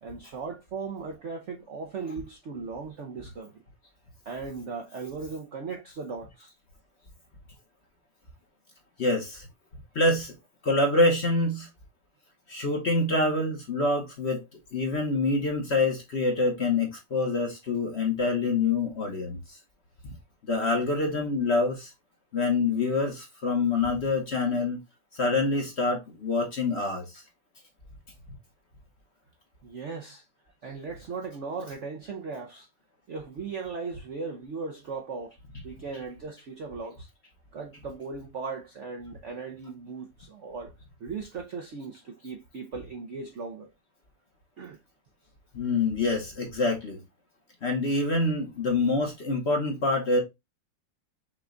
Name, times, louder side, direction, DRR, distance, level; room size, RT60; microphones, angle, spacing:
voice 1, 0.0-3.6 4.3-6.5 29.6-30.3 30.6-32.7 33.1-35.4 35.6-37.1 37.5-40.7 41.0-43.7 44.6-44.8, right 4 dB, 60° right, 0.7 m, -37 dB
voice 2, 9.0-9.5 9.9-10.3 10.6-11.7 12.5-14.4 14.7-19.4 20.5-21.9 22.3-24.8 25.1-27.2 45.5-47.0 47.6-50.2, left 2 dB, 45° left, 1.0 m, -26 dB
6.1 x 2.3 x 3.7 m
omnidirectional pair, 2.0 m